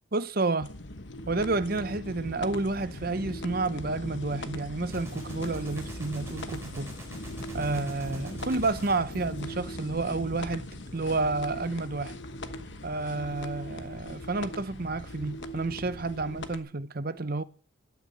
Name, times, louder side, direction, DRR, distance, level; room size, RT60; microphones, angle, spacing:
voice 1, 0.1-0.7 1.3-6.9 7.5-12.1 12.8-17.4, right 3 dB, 45° right, 0.8 m, -30 dB
sound 1, 0.6-16.6, left 1 dB, 55° left, 1.1 m, -39 dB
Gunshot gunfire, 4.9-10.1, right 1 dB, 15° right, 3.7 m, -46 dB
12.0 x 9.5 x 6.8 m
head